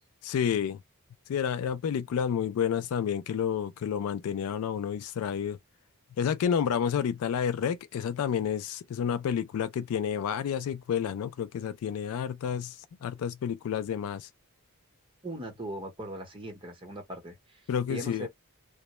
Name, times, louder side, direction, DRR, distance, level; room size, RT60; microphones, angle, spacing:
voice 1, 0.2-0.8 1.3-5.6 6.2-12.8 13.0-14.3 17.7-18.3, left 8 dB, 75° left, 0.3 m, -30 dB
voice 2, 15.2-18.3, right 1 dB, 25° right, 0.9 m, -40 dB
2.1 x 2.0 x 2.9 m
head